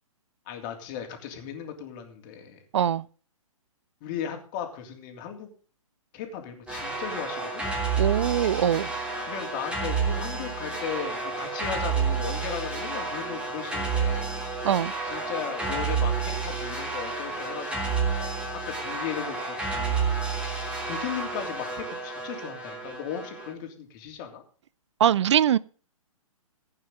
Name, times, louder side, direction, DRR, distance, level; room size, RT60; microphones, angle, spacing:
voice 1, 0.5-2.6 4.0-5.5 6.1-7.7 9.2-14.3 15.0-20.0 20.8-24.4, left 8 dB, 35° left, 3.1 m, -36 dB
voice 2, 2.7-3.0 8.0-8.9 14.6-14.9 25.0-25.6, right 10 dB, 55° right, 0.5 m, -22 dB
sound 1, 6.7-23.5, right 4 dB, 5° right, 3.1 m, -30 dB
16.0 x 8.9 x 3.8 m
figure-of-eight pair, 125°, 18 cm